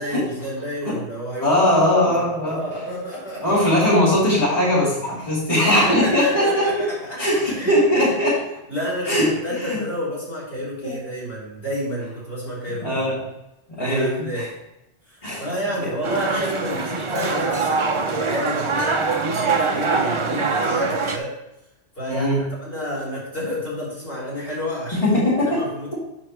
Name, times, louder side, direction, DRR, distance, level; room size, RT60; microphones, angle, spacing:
voice 1, 0.0-3.6 5.7-7.8 8.7-13.1 13.8-14.5 15.1-21.3 22.0-25.1 25.5-26.0, equal, 55° left, -7 dB, 3.7 m, -30 dB
voice 2, 1.4-2.6 3.4-6.9 7.2-8.4 9.0-9.8 10.8-11.0 12.8-13.2 13.7-14.5 15.2-15.5 15.8-15.9 22.1-22.4 24.9-25.6, left 1 dB, 30° left, -10 dB, 3.2 m, -20 dB
sound 1, 16.0-21.2, right 4 dB, 35° right, 0.6 m, -23 dB
8.9 x 6.3 x 3.2 m, 0.91 s
omnidirectional pair, 1.1 m